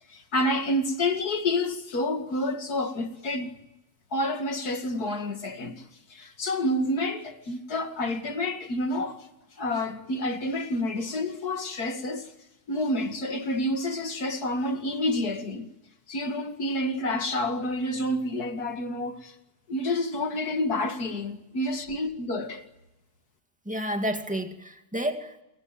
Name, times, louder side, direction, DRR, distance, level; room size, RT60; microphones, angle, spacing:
voice 1, 0.1-3.5 4.1-5.8 6.1-9.3 9.6-12.3 12.7-15.7 16.1-19.4 19.7-22.6, left 1 dB, 80° left, 2.7 m, -29 dB
voice 2, 23.7-25.4, equal, 5° right, 2.3 m, -30 dB
28.0 x 22.0 x 9.1 m
omnidirectional pair, 1.6 m